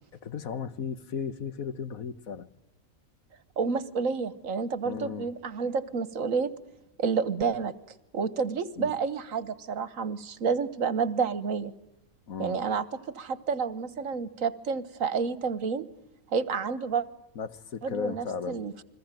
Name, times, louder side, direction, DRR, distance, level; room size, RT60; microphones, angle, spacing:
voice 1, 0.2-2.5 4.8-5.3 8.7-8.9 12.3-12.6 17.3-18.6, left 6 dB, 80° left, 1.7 m, -35 dB
voice 2, 3.6-6.5 7.0-7.7 8.1-11.7 12.4-12.8 13.1-15.8 16.3-17.0 17.8-18.8, right 5 dB, 70° right, 1.6 m, -29 dB
29.5 x 22.5 x 9.1 m
omnidirectional pair, 1.5 m